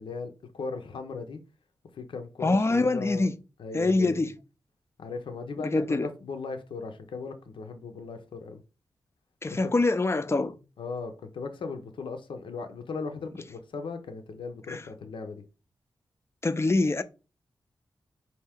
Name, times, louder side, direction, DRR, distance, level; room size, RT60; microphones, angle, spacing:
voice 1, 0.0-1.4 1.9-3.3 3.6-4.3 5.0-8.6 9.5-9.7 10.8-15.4, left 4 dB, 80° left, 0.6 m, -37 dB
voice 2, 2.4-3.3 3.7-4.3 5.6-6.1 9.4-10.6 14.7-14.8 16.4-17.0, left 2 dB, 30° left, 0.5 m, -25 dB
4.4 x 2.8 x 3.4 m
cardioid pair, 45°, 8 cm